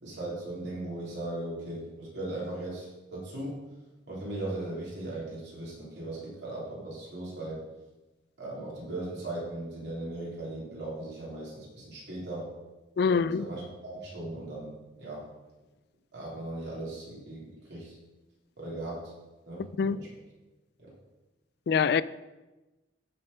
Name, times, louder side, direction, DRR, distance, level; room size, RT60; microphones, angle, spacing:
voice 1, 0.0-3.6 4.1-7.6 8.4-12.5 13.0-15.3 16.1-18.0 18.6-19.0 19.5-20.1 20.8-20.9, right 2 dB, 65° right, 3.4 m, -38 dB
voice 2, 13.0-13.5 19.8-20.0 21.7-22.0, left 6 dB, 55° left, 0.3 m, -24 dB
13.0 x 4.4 x 5.0 m
head